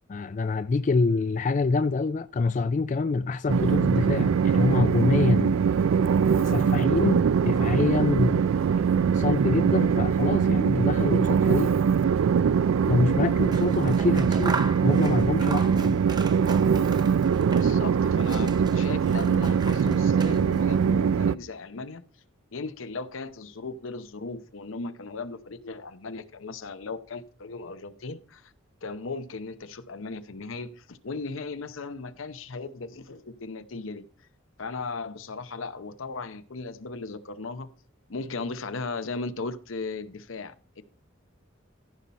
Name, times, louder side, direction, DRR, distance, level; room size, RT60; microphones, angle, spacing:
voice 1, 0.1-5.6 6.4-8.8 9.1-11.7 12.9-16.0, left 3 dB, 40° left, 0.4 m, -26 dB
Train, 3.5-21.3, right 6 dB, 90° right, 0.3 m, -22 dB
Scissors, 13.4-17.9 18.2-20.7, right 4 dB, 20° right, 0.7 m, -38 dB
voice 2, 17.5-22.0 22.5-28.5 28.8-34.0 34.6-37.7 38.1-40.8, left 3 dB, 80° left, 0.8 m, -37 dB
14.5 x 5.5 x 4.2 m
head